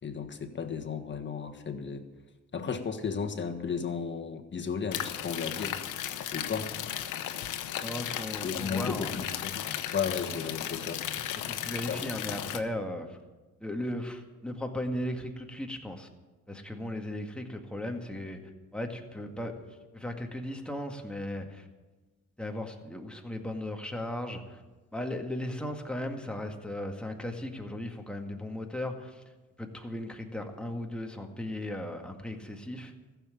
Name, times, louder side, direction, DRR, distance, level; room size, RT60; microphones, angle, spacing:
voice 1, 0.0-2.0 2.5-5.8 6.3-6.7 8.4-9.6 9.9-11.0 11.9-12.1, left 6 dB, 40° left, 6 dB, 1.6 m, -34 dB
sound 1, 4.9-12.6, left 11 dB, 80° left, 1.0 m, -35 dB
voice 2, 7.8-9.1 11.4-13.2 13.6-16.1 16.5-18.4 18.7-19.7 19.9-21.7 22.4-24.6 24.9-29.2 29.6-32.9, left 1 dB, 5° left, 3 dB, 1.9 m, -36 dB
14.5 x 7.4 x 9.2 m, 1.2 s
cardioid pair, 90°, 30 cm